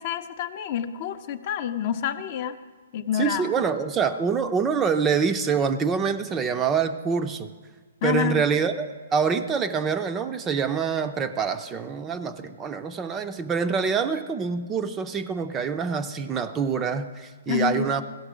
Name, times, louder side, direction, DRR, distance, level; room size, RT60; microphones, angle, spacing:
voice 1, 0.0-2.6 2.9-3.5 8.0-8.4 17.5-17.9, left 9 dB, 40° left, 9 dB, 0.6 m, -28 dB
voice 2, 3.1-7.5 8.0-18.0, right 6 dB, 15° right, 8 dB, 0.4 m, -25 dB
16.0 x 5.8 x 4.9 m, 1.4 s
hypercardioid pair, 150°, 0 cm